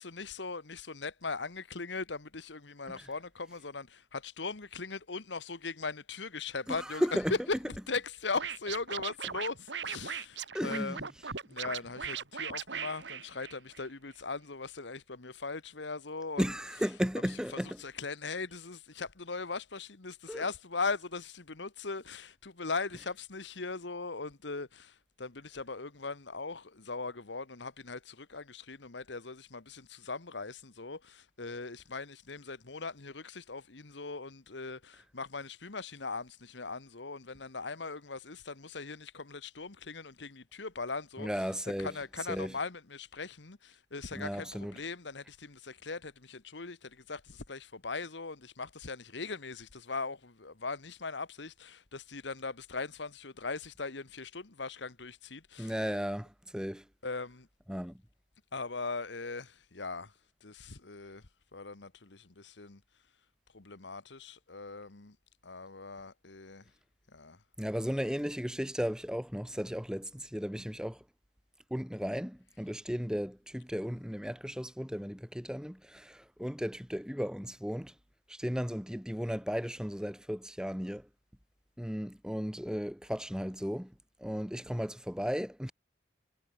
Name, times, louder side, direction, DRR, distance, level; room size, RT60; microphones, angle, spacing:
voice 1, 0.0-7.1 7.7-11.0 11.4-16.4 17.8-41.4 41.8-55.7 57.0-57.5 58.5-60.1 60.4-61.2 61.5-62.8 63.5-65.1 65.4-66.6 67.1-67.4, left 4 dB, 75° left, 1.5 m, -40 dB
voice 2, 6.7-7.3 10.5-11.1 16.4-17.8 20.3-20.4 41.2-41.9 42.3-42.5 44.1-44.7 55.6-56.8 57.7-58.0 67.6-71.0 71.7-77.9 78.3-81.1 81.8-83.9 84.2-85.7, equal, 5° right, 2.9 m, -35 dB
Scratching (performance technique), 8.4-13.8, right 7 dB, 75° right, 2.7 m, -39 dB
head